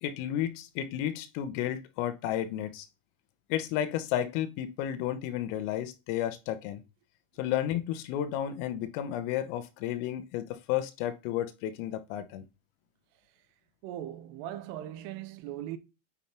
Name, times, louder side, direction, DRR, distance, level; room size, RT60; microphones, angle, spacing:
voice 1, 0.0-2.9 3.5-6.8 7.4-12.5, left 11 dB, 90° left, 3.5 m, -32 dB
voice 2, 13.8-15.8, right 12 dB, 85° right, 3.2 m, -39 dB
9.7 x 5.3 x 2.9 m
omnidirectional pair, 5.8 m